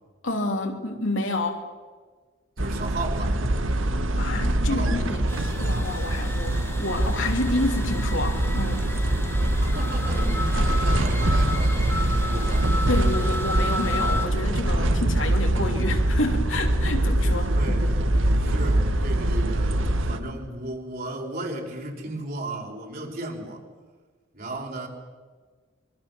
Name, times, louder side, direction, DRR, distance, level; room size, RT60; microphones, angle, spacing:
voice 1, 0.2-1.6 4.2-5.3 5.6-8.8 12.8-17.8, left 2 dB, 75° left, 3 dB, 3.2 m, -29 dB
voice 2, 2.6-3.4 4.5-5.2 9.6-12.7 17.5-17.9 18.4-23.7 24.3-24.9, right 1 dB, 45° right, 1 dB, 4.7 m, -35 dB
sound 1, 2.6-20.2, right 1 dB, 80° right, 1.7 m, -23 dB
sound 2, 5.3-14.3, left 2 dB, 15° left, 2.7 m, -34 dB
25.5 x 24.0 x 7.1 m, 1.5 s
head